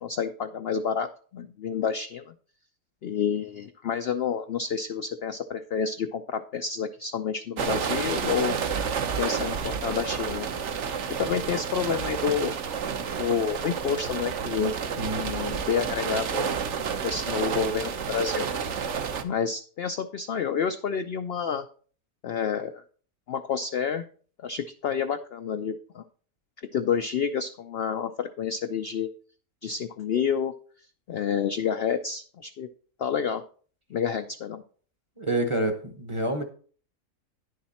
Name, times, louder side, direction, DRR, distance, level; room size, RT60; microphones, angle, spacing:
voice 1, 0.0-2.3 3.0-8.6 9.2-10.5 11.2-12.5 13.2-14.7 15.2-16.5 16.8-18.5 18.7-18.8 19.2-21.6 22.2-22.8 23.3-24.0 24.4-26.0 26.7-29.1 29.6-30.5 31.1-32.7 33.0-33.4 33.9-34.6, left 7 dB, 70° left, 0.6 m, -29 dB
sound 1, 7.6-19.2, right 6 dB, 60° right, 1.0 m, -30 dB
voice 2, 15.0-15.3 35.2-36.4, right 1 dB, 25° right, 0.8 m, -28 dB
10.0 x 6.4 x 4.2 m
omnidirectional pair, 1.6 m